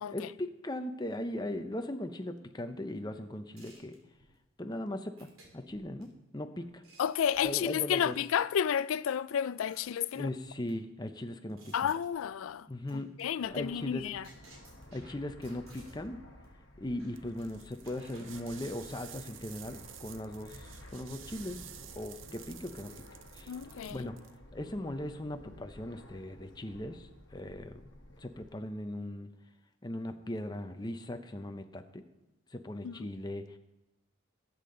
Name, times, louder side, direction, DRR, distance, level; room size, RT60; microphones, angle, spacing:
voice 1, 0.1-4.0 4.6-6.8 7.4-8.2 10.1-11.9 12.7-14.1 14.9-16.2 16.8-21.7 22.0-23.0 23.3-23.5 23.9-27.9 28.2-29.3 29.8-32.0 32.5-33.6, left 1 dB, 20° left, 0.7 m, -39 dB
sound 1, 3.6-4.3 5.2-6.0 6.6-8.4 9.1-9.2 9.7-10.7 11.2-12.6 12.9-13.2 13.5-16.1 16.4-16.6 17.0-17.4 17.8-18.5, right 1 dB, 90° right, 3.2 m, -57 dB
voice 2, 7.0-10.3 11.7-12.7 13.2-14.2 23.5-24.1 32.8-33.1, left 8 dB, 80° left, 0.3 m, -31 dB
Fixed-wing aircraft airplane, 13.4-28.5, left 1 dB, 60° left, 1.5 m, -53 dB
sound 2, 17.1-24.4, right 11 dB, 70° right, 0.6 m, -51 dB
18.5 x 8.6 x 3.9 m
head